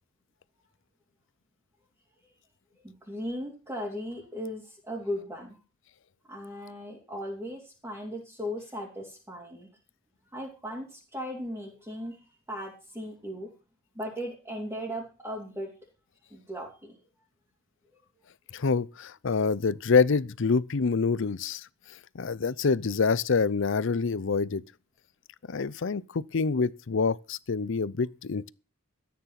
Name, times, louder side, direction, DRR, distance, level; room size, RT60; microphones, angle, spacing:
voice 1, 2.8-5.6 6.3-9.7 10.3-13.5 13.9-15.7 16.3-17.0, equal, 15° right, 3.3 m, -37 dB
voice 2, 18.5-21.7 22.1-24.6 25.5-28.5, left 4 dB, 65° left, 0.6 m, -26 dB
13.5 x 9.4 x 5.9 m
head